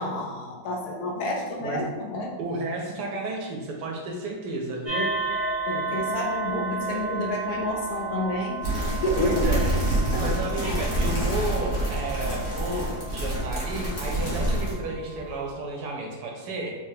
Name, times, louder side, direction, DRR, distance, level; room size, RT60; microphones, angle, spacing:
voice 1, 0.0-2.3 5.7-8.6 8.9-9.9 10.1-10.3 10.6-10.8, left 1 dB, 70° left, 0 dB, 1.0 m, -30 dB
voice 2, 2.4-5.1 9.2-9.7 10.2-16.7, right 2 dB, 70° right, 0 dB, 1.1 m, -32 dB
sound 1, 4.8-15.5, right 3 dB, 35° right, 0.5 m, -33 dB
sound 2, 8.6-14.7, right 1 dB, 50° left, 1.4 m, -27 dB
3.4 x 3.3 x 2.7 m, 1.3 s
omnidirectional pair, 1.9 m